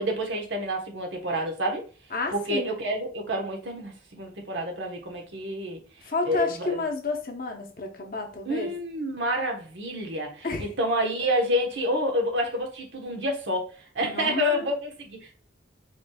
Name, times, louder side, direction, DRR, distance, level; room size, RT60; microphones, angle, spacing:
voice 1, 0.0-1.8 2.3-5.8 6.2-6.8 8.4-13.6 13.9-15.3, equal, 75° right, 1 dB, 1.2 m, -28 dB
voice 2, 2.1-2.7 6.0-8.7 10.4-10.7 14.0-14.7, left 3 dB, 50° left, 2 dB, 0.9 m, -30 dB
5.1 x 3.3 x 2.3 m, 0.38 s
head